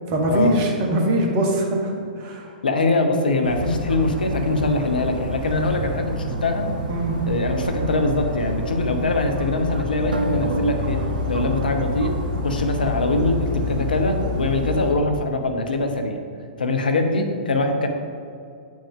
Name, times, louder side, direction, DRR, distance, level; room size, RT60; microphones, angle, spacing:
voice 1, 0.1-1.9 2.2-2.5 6.9-7.2, right 1 dB, 35° right, 0 dB, 1.3 m, -22 dB
voice 2, 2.6-6.7 7.3-11.0 11.3-12.1 12.4-16.2 16.6-17.9, left 2 dB, 70° left, 5 dB, 0.8 m, -23 dB
Dog, 3.4-14.9, left 1 dB, 65° right, 1.3 m, -28 dB
sound 1, 10.1-13.3, right 2 dB, 80° right, 0.5 m, -31 dB
8.4 x 6.2 x 3.6 m, 2.4 s
figure-of-eight pair, 110°, 5 cm